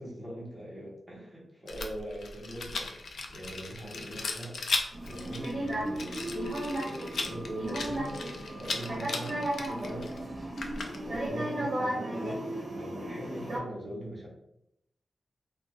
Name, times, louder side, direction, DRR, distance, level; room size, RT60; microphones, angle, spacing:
voice 1, 0.0-4.6 5.0-10.1 11.0-12.4 12.7-14.3, right 1 dB, 5° right, -6 dB, 0.9 m, -42 dB
Rattle, 1.7-11.3, left 3 dB, 80° left, 0.3 m, -37 dB
sound 1, 4.9-13.6, right 1 dB, 35° right, 0.8 m, -35 dB
2.5 x 2.2 x 3.1 m, 0.78 s
wide cardioid pair, 165°, 0 cm